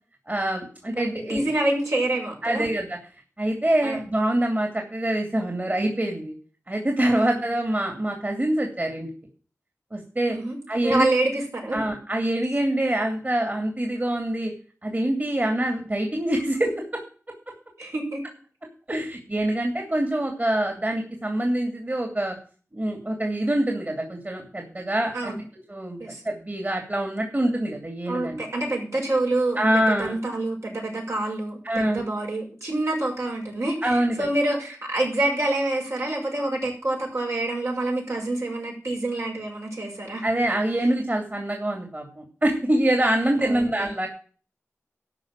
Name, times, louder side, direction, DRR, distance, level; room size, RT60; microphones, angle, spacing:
voice 1, 0.3-1.5 2.4-3.0 3.4-6.4 6.7-9.1 9.9-10.4 10.7-11.1 11.7-14.5 14.8-16.7 18.9-22.3 22.7-25.4 25.7-28.4 29.6-30.2 31.6-32.0 33.8-34.1 40.2-44.1, right 1 dB, 35° right, 2 dB, 2.8 m, -25 dB
voice 2, 0.9-2.7 3.8-4.0 7.1-7.4 10.3-10.6 10.8-11.9 17.8-18.2 25.1-25.4 26.0-26.2 28.1-40.2 43.4-43.9, right 2 dB, 70° right, -1 dB, 6.0 m, -27 dB
13.0 x 5.7 x 8.9 m, 0.41 s
wide cardioid pair, 70°, 5 cm